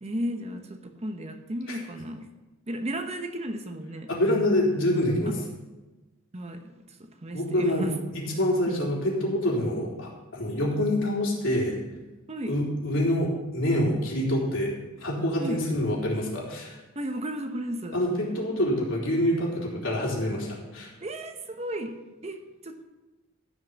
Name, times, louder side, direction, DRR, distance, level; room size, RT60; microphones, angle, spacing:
voice 1, 0.0-2.3 2.7-4.1 5.3-5.4 6.3-8.0 8.7-8.9 12.3-12.6 15.4-15.6 16.9-18.0 21.0-22.8, right 1 dB, 30° right, 6 dB, 1.0 m, -34 dB
voice 2, 4.1-5.3 7.3-7.9 8.1-11.8 12.5-14.7 15.0-16.8 17.9-20.9, left 1 dB, 65° left, -3 dB, 3.8 m, -26 dB
15.0 x 5.9 x 7.1 m, 1.1 s
head